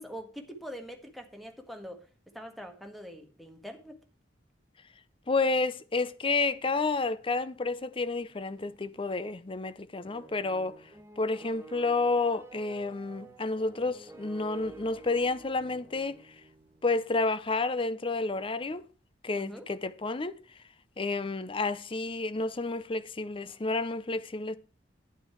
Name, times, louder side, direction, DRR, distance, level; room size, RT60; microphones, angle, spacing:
voice 1, 0.0-2.0 2.3-4.0 19.4-19.7, equal, ahead, 1.6 m, -43 dB
voice 2, 5.3-10.8 11.2-16.2 16.8-18.9 19.2-20.4 21.0-24.6, left 3 dB, 30° left, 0.6 m, -30 dB
sound 1, 10.0-17.0, right 3 dB, 15° right, 1.2 m, -50 dB
10.0 x 9.2 x 4.5 m
head